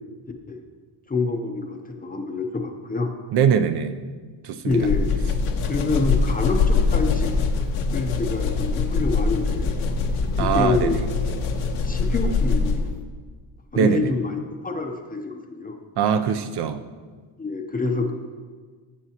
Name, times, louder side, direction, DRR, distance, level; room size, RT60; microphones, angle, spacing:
voice 1, 1.1-3.1 4.6-5.1 5.6-7.3 7.9-9.8 10.4-11.0 11.8-12.9 13.7-15.8 17.4-18.1, left 3 dB, 20° left, 3 dB, 0.6 m, -26 dB
voice 2, 3.3-4.0 4.4-4.9 10.4-11.1 13.8-14.1 16.0-16.8, right 7 dB, 55° right, 10 dB, 0.5 m, -22 dB
sound 1, 4.7-13.0, left 4 dB, 85° left, 1.2 m, -23 dB
15.5 x 7.9 x 2.8 m, 1.5 s
cardioid pair, 175°, 49 cm